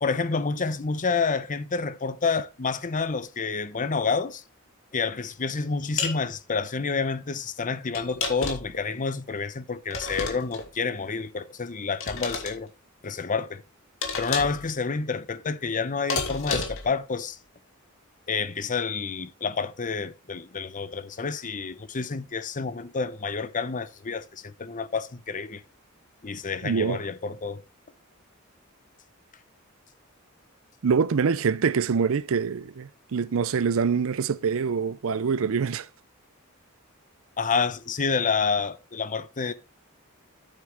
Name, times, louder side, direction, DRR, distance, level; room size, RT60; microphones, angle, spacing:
voice 1, 0.0-4.4 4.9-12.7 13.0-13.6 14.2-17.4 18.3-25.6 26.2-27.6 37.4-39.5, left 4 dB, 40° left, 0.8 m, -29 dB
sound 1, 6.0-6.2 7.9-8.8 9.9-10.7 12.0-12.5 14.0-14.7 16.1-16.9, left 4 dB, 70° left, 2.3 m, -30 dB
voice 2, 26.6-27.0 30.8-35.9, right 6 dB, 70° right, 0.5 m, -25 dB
8.9 x 7.6 x 3.4 m
head